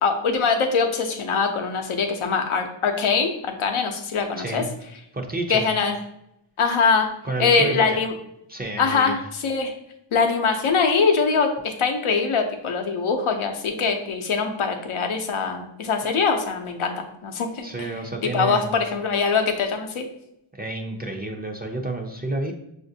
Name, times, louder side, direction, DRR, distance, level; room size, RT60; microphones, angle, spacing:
voice 1, 0.0-4.6 5.5-6.0 6.6-7.1 7.4-8.1 8.8-9.7 10.1-17.7 18.3-20.1, left 5 dB, 85° left, 4 dB, 0.7 m, -23 dB
voice 2, 4.4-4.7 5.1-5.7 7.2-8.0 8.5-9.2 17.6-18.7 20.5-22.5, right 2 dB, 20° right, 2 dB, 0.5 m, -30 dB
5.7 x 2.5 x 2.7 m, 0.79 s
wide cardioid pair, 90°, 48 cm